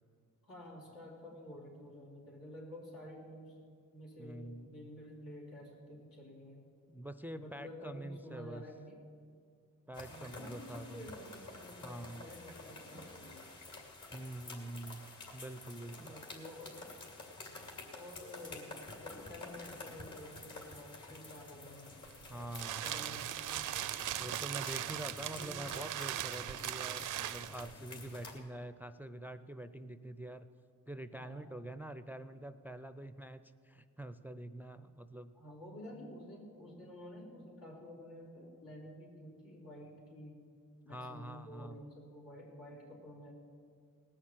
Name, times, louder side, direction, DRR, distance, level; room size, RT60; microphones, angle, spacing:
voice 1, 0.4-3.7 3.9-6.7 7.3-9.0 10.1-13.5 15.9-16.9 17.9-21.9 22.8-23.4 24.8-25.7 31.1-31.5 35.3-40.5 40.8-43.3, left 1 dB, 85° left, -4 dB, 3.9 m, -51 dB
voice 2, 4.2-4.9 6.9-8.6 9.9-11.0 11.8-12.3 14.1-16.1 22.3-23.2 24.2-30.5 30.9-35.3 40.9-41.8, right 1 dB, 5° right, 12 dB, 0.4 m, -46 dB
sound 1, 9.9-28.4, left 2 dB, 60° left, 2.9 m, -50 dB
sound 2, 22.1-27.7, right 12 dB, 65° right, 0.5 m, -39 dB
19.0 x 6.5 x 7.5 m, 2.2 s
cardioid pair, 75°, 34 cm